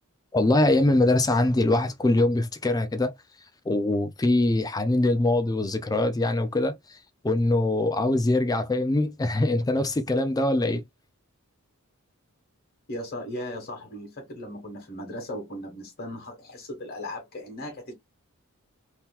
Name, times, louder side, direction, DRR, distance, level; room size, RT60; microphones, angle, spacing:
voice 1, 0.3-3.1 3.7-7.0 7.2-10.8, left 2 dB, 15° left, 0.4 m, -23 dB
voice 2, 12.9-17.9, left 1 dB, 45° left, 1.2 m, -37 dB
3.7 x 2.8 x 2.3 m
head